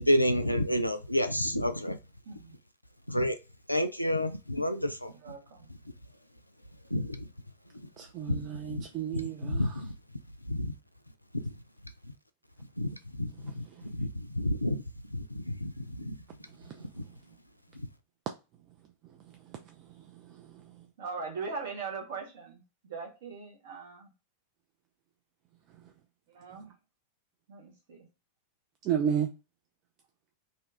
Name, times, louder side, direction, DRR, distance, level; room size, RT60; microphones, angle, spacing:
voice 1, 0.0-2.0 3.1-3.3 3.7-5.1 6.9-7.2 8.3-8.4 8.7-8.8 9.4-9.9 10.5-10.7 12.8-12.9 13.2-13.3 13.6-13.7 13.9-14.8 15.3-15.7 16.0-16.2, equal, 90° left, 0.3 m, -29 dB
voice 2, 2.2-2.6 5.1-5.7 21.0-24.1 26.3-26.7 27.5-28.1, right 4 dB, 55° right, 1.0 m, -40 dB
voice 3, 8.0-9.6 28.9-29.3, right 8 dB, 35° right, 0.3 m, -31 dB
2.7 x 2.3 x 3.3 m
figure-of-eight pair, 90°, 0 cm